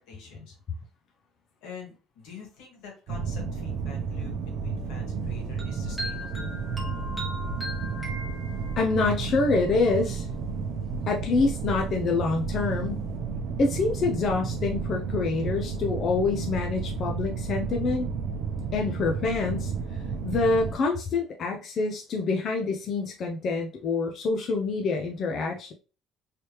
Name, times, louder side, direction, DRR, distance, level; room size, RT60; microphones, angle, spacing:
voice 1, 0.1-0.5 1.6-6.6, left 5 dB, 85° left, 1 dB, 1.6 m, -46 dB
sound 1, 3.1-20.8, right 5 dB, 65° right, 0.6 m, -32 dB
sound 2, 5.6-9.1, equal, 5° right, 0.9 m, -38 dB
voice 2, 8.8-10.3 11.1-13.1 13.6-18.1 18.7-25.7, left 4 dB, 45° left, 2 dB, 0.5 m, -26 dB
3.2 x 3.1 x 2.9 m, 0.34 s
cardioid pair, 150°, 0 cm